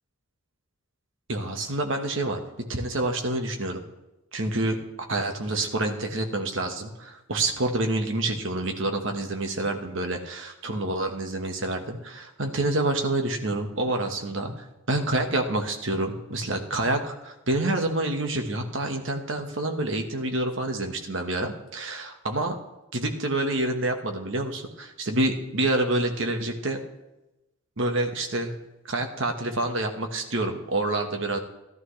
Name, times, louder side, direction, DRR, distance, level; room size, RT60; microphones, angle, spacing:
voice 1, 1.3-2.4 2.7-3.8 4.3-4.8 5.1-14.5 14.9-22.5 22.9-26.8 27.8-28.5 28.9-31.4, right 2 dB, 60° right, 4 dB, 1.4 m, -27 dB
14.5 x 12.0 x 3.3 m, 0.99 s
head